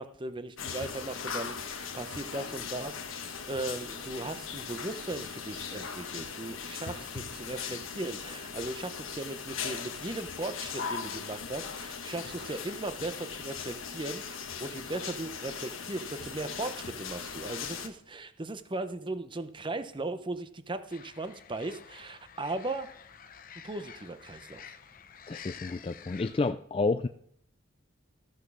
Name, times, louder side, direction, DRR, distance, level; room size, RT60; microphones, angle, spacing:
voice 1, 0.0-22.9 23.6-24.6, right 2 dB, 25° right, 11 dB, 0.8 m, -38 dB
sound 1, 0.6-17.9, left 6 dB, 75° left, 1.2 m, -39 dB
sound 2, 20.9-26.5, left 7 dB, 45° left, 0.8 m, -50 dB
voice 2, 25.3-27.1, left 3 dB, 25° left, 9 dB, 0.4 m, -30 dB
14.0 x 6.6 x 6.2 m, 0.66 s
head